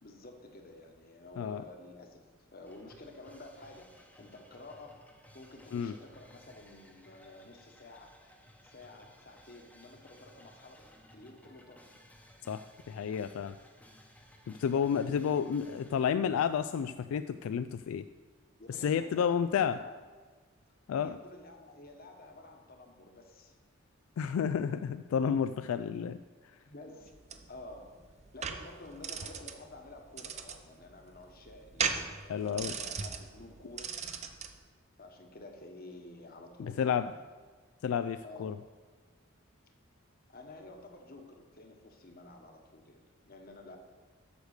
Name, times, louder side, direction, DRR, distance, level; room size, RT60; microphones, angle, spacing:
voice 1, 0.0-2.2 2.5-5.0 5.3-8.2 8.6-11.9 14.6-15.5 18.6-19.9 21.0-23.6 26.6-28.0 28.3-34.0 35.0-37.3 38.2-38.6 40.3-43.8, left 2 dB, 45° left, 3 dB, 1.2 m, -51 dB
sound 1, 2.6-16.1, left 1 dB, 5° left, 0.8 m, -59 dB
voice 2, 12.5-13.5 14.5-18.1 18.8-19.8 20.9-21.2 24.2-26.2 32.3-32.7 36.8-37.1 37.8-38.6, left 7 dB, 75° left, 11 dB, 0.3 m, -31 dB
sound 2, 27.0-34.6, right 6 dB, 30° right, 0.6 m, -38 dB
8.1 x 6.5 x 6.5 m, 1.5 s
head